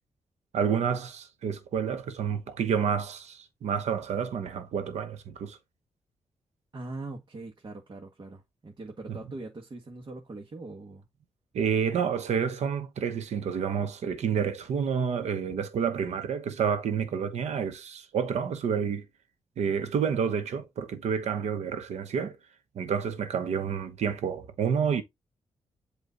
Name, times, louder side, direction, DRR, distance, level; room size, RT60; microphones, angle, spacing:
voice 1, 0.5-5.6 9.1-9.2 11.5-19.0 19.6-22.4 22.7-25.0, right 7 dB, 85° right, 1.0 m, -29 dB
voice 2, 6.7-11.1, right 2 dB, 40° right, 1.7 m, -41 dB
8.2 x 3.1 x 3.9 m
cardioid pair, 85°, 11 cm